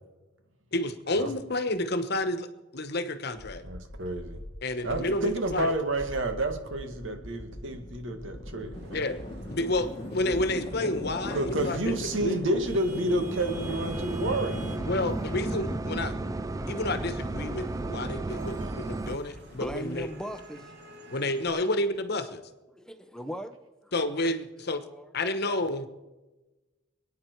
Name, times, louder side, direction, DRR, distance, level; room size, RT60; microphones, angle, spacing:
voice 1, 0.7-3.6 4.6-5.7 8.9-9.2 9.5-12.3 14.8-16.1 16.7-20.1 21.1-22.4 23.9-24.8 25.1-25.9, left 2 dB, 60° left, 10 dB, 1.2 m, -30 dB
sound 1, 3.4-20.4, left 1 dB, 25° left, 1.4 m, -40 dB
voice 2, 3.6-4.4 4.8-9.0 11.3-14.6 18.3-18.8, right 1 dB, 85° right, 6 dB, 2.0 m, -30 dB
Vehicle horn car horn honking / Traffic noise roadway noise, 8.7-21.5, right 2 dB, 60° right, 2.3 m, -50 dB
sound 2, 12.9-19.2, right 2 dB, 20° right, 0.4 m, -34 dB
voice 3, 19.4-20.7 22.7-23.6 23.8-23.9 24.9-25.1, equal, 5° left, 9 dB, 0.8 m, -39 dB
26.0 x 9.3 x 4.7 m, 1.1 s
head